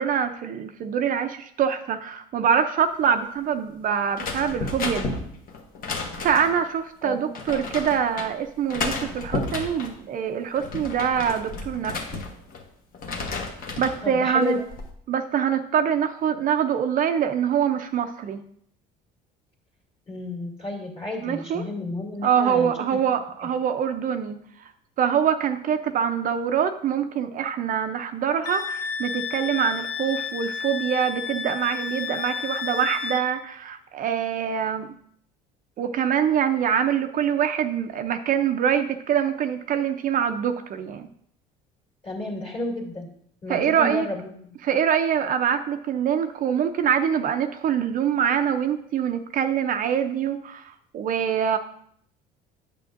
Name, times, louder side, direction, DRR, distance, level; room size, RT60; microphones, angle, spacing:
voice 1, 0.0-5.2 6.2-12.2 13.8-14.6 15.1-18.4 21.2-21.6 22.2-24.4 25.0-34.9 35.8-41.1 43.5-44.1 44.6-51.6, right 8 dB, 50° right, 7 dB, 0.5 m, -24 dB
sound 1, 4.1-6.6 7.3-8.3 8.7-9.9 10.4-12.6 12.9-14.0 14.5-14.9, left 3 dB, 55° left, 1.2 m, -32 dB
voice 2, 7.0-7.3 14.0-14.6 20.1-23.0 42.0-43.1 43.4-44.5, left 2 dB, 35° left, -1 dB, 2.3 m, -31 dB
Wind instrument woodwind instrument, 28.4-33.2, left 6 dB, 70° left, 0.7 m, -31 dB
8.5 x 6.9 x 2.5 m, 0.66 s
supercardioid pair, 90°, 18 cm